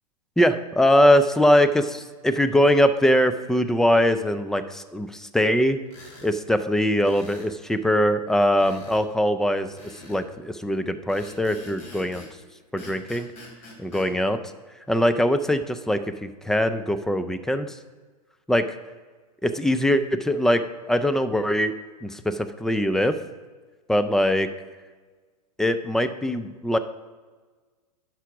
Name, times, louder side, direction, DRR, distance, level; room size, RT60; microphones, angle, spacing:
voice 1, 0.4-5.8 6.2-9.7 10.0-12.2 12.7-13.3 13.8-14.4 14.9-17.8 18.5-18.7 19.4-21.7 22.0-23.2 23.9-24.5 25.6-26.8, equal, ahead, 10 dB, 0.3 m, -22 dB
sound 1, 5.9-6.3 7.0-7.5 8.6-9.0 9.8-10.2 11.1-12.3 12.8-14.1, left 2 dB, 35° left, 3.1 m, -45 dB
9.9 x 6.0 x 4.9 m, 1.4 s
hypercardioid pair, 110°, 21 cm